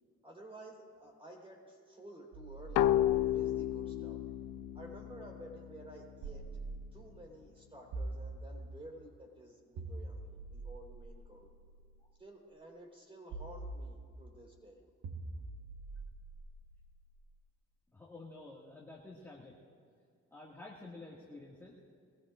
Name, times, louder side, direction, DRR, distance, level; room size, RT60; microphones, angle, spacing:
voice 1, 0.2-4.2 4.7-6.4 6.9-11.5 12.2-14.8, right 1 dB, 20° right, 0 dB, 4.1 m, -52 dB
sound 1, 2.3-5.1 6.2-7.3 7.9-9.0 9.8-12.0 13.3-14.4 15.0-17.2, right 2 dB, 85° right, 1.6 m, -45 dB
sound 2, 2.8-6.2, left 12 dB, 80° left, 0.5 m, -32 dB
voice 2, 17.9-19.6 20.3-21.8, left 2 dB, 10° left, -5 dB, 2.0 m, -50 dB
22.5 x 15.5 x 2.6 m, 2.3 s
cardioid pair, 90°, 30 cm